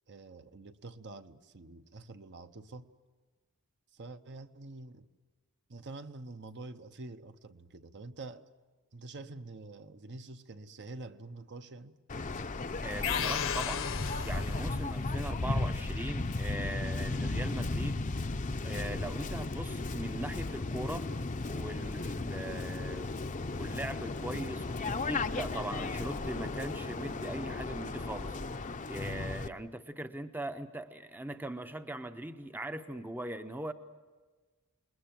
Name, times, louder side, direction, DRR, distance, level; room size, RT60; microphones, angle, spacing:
voice 1, 0.1-2.9 3.9-5.1 5.7-8.5 8.9-12.0, right 2 dB, 50° right, 0.8 m, -47 dB
Waves surf, 12.1-29.5, left 3 dB, 35° left, 0.7 m, -35 dB
voice 2, 12.8-18.0 18.6-21.1 21.4-23.1 23.5-28.4 28.6-33.7, right 1 dB, 10° right, 0.7 m, -40 dB
sound 1, 13.0-14.9, left 8 dB, 60° left, 1.0 m, -35 dB
28.5 x 21.0 x 7.6 m
head